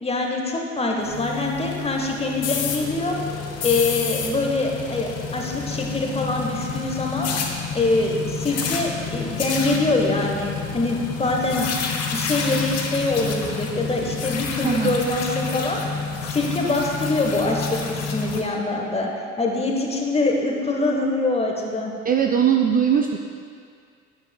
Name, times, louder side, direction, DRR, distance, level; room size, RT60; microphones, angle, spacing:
voice 1, 0.0-3.2 3.6-7.3 7.7-11.7 12.1-19.1 19.4-21.9, left 2 dB, 20° left, 1 dB, 1.1 m, -24 dB
sound 1, 1.0-18.4, left 5 dB, 50° left, 0.9 m, -29 dB
voice 2, 14.6-14.9 22.1-23.2, right 8 dB, 25° right, 3 dB, 0.4 m, -20 dB
9.3 x 7.4 x 2.2 m, 2.2 s
hypercardioid pair, 55°, 34 cm